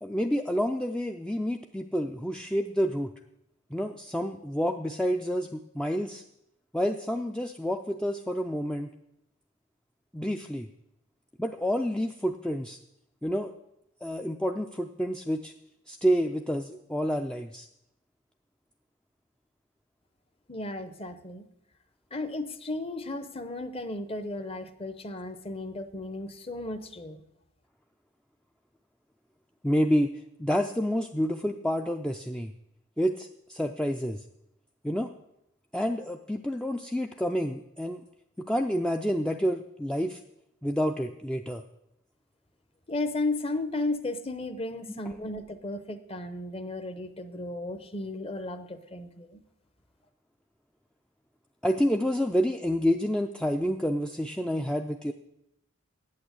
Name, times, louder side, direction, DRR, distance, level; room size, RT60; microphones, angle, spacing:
voice 1, 0.0-3.1 3.7-6.2 6.7-8.9 10.1-10.7 11.4-12.8 13.2-13.5 14.0-15.5 15.9-17.7 29.6-30.1 30.4-32.5 33.0-34.2 34.8-35.1 35.7-38.0 38.4-40.2 40.6-41.6 45.2-45.3 51.6-55.1, equal, 5° left, 4 dB, 0.3 m, -28 dB
voice 2, 20.5-21.5 22.1-27.2 42.9-49.4, left 2 dB, 25° left, 10 dB, 0.8 m, -34 dB
8.6 x 8.5 x 8.1 m, 0.82 s
head